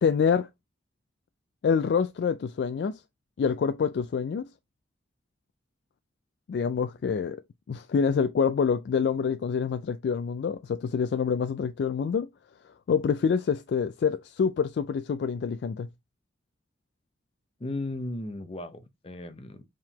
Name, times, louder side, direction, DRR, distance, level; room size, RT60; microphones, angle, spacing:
voice 1, 0.0-0.5 1.6-3.0 3.4-4.5 6.5-7.4 7.7-12.3 12.9-15.9, left 6 dB, 70° left, 0.3 m, -26 dB
voice 2, 17.6-19.6, left 2 dB, 30° left, 0.6 m, -36 dB
4.7 x 3.6 x 2.8 m
head